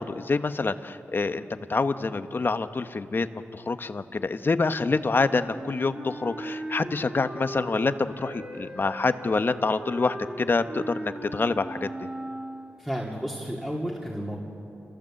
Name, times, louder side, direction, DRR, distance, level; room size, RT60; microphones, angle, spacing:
voice 1, 0.0-12.1, left 3 dB, 45° left, 10 dB, 1.0 m, -27 dB
Wind instrument woodwind instrument, 5.5-12.8, right 1 dB, 30° right, 5.6 m, -38 dB
voice 2, 12.8-14.4, equal, 5° right, -4 dB, 2.9 m, -32 dB
28.0 x 15.5 x 7.7 m, 2.9 s
cardioid pair, 60°, 5 cm